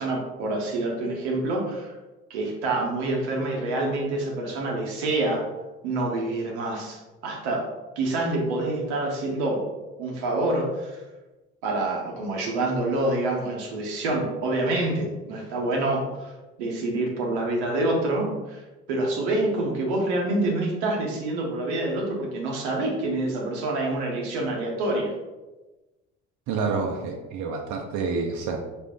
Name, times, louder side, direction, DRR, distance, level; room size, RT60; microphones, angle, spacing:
voice 1, 0.0-2.0 2.3-5.4 5.8-7.7 8.0-9.7 10.0-11.0 11.6-16.3 16.6-18.6 18.9-25.1, right 2 dB, 90° right, -1 dB, 0.9 m, -27 dB
voice 2, 26.5-28.6, right 4 dB, 60° right, 1 dB, 0.7 m, -28 dB
4.3 x 2.5 x 3.6 m, 1.1 s
supercardioid pair, 70°, 32 cm